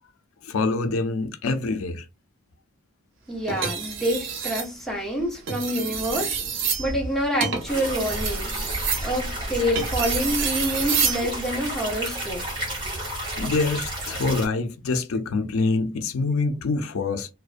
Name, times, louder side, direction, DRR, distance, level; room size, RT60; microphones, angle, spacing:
voice 1, 0.4-2.1 13.2-17.3, left 3 dB, 90° left, 0.4 m, -25 dB
voice 2, 3.3-6.4 6.8-8.5 9.0-12.5, equal, ahead, 0.7 m, -27 dB
sound 1, 3.5-4.7 5.4-11.3 12.7-13.0, right 6 dB, 65° right, 0.6 m, -28 dB
sound 2, 7.7-14.5, right 1 dB, 20° right, 1.0 m, -31 dB
2.4 x 2.1 x 2.4 m
head